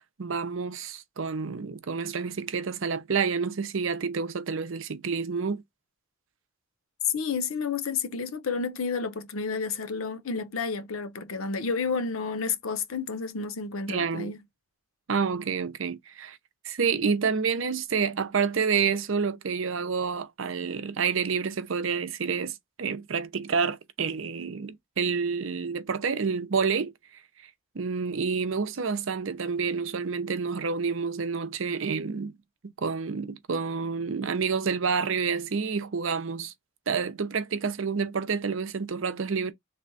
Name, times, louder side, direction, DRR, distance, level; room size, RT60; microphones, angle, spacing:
voice 1, 0.0-5.6 13.9-14.3 15.1-16.4 16.6-26.9 27.7-32.3 32.8-36.5 36.9-39.5, right 5 dB, 75° right, 0.6 m, -28 dB
voice 2, 7.1-14.4, left 5 dB, 85° left, 0.7 m, -31 dB
3.4 x 2.2 x 3.9 m
head